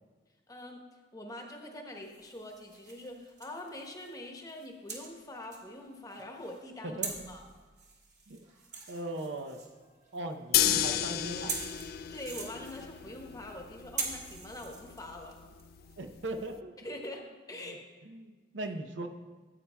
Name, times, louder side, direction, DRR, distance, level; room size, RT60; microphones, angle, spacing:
voice 1, 0.5-0.8 1.1-7.0 7.3-7.4 12.1-15.4 16.8-17.8 18.6-18.7, left 1 dB, 20° left, 2 dB, 1.0 m, -44 dB
sound 1, 2.0-4.2 4.5-16.3, right 4 dB, 40° right, 1.5 m, -44 dB
voice 2, 6.8-7.3 8.3-8.4 8.9-9.6 10.1-11.6 16.0-17.1 17.6-19.1, right 2 dB, 70° right, 6 dB, 0.7 m, -39 dB
sound 2, 10.5-16.6, left 11 dB, 55° left, 0.3 m, -33 dB
14.5 x 8.4 x 2.2 m, 1.3 s
head